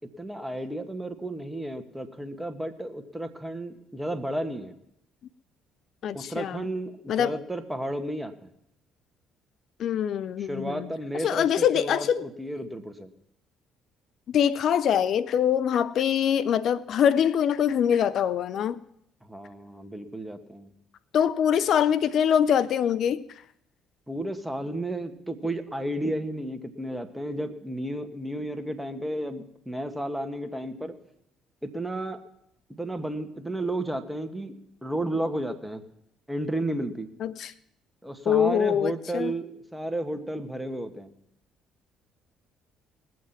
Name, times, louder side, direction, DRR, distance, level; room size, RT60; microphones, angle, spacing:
voice 1, 0.2-4.7 6.1-8.5 10.4-13.1 19.3-20.7 24.1-30.9 31.6-32.2 32.7-34.6 34.8-35.8 36.3-37.1 38.0-41.1, right 1 dB, 5° right, 1.8 m, -32 dB
voice 2, 6.0-6.6 7.1-7.4 9.8-10.9 11.2-12.3 14.3-18.8 21.1-23.2 37.2-37.5 38.3-39.3, left 8 dB, 60° left, 0.4 m, -24 dB
20.0 x 7.6 x 5.9 m
hypercardioid pair, 55°, 0 cm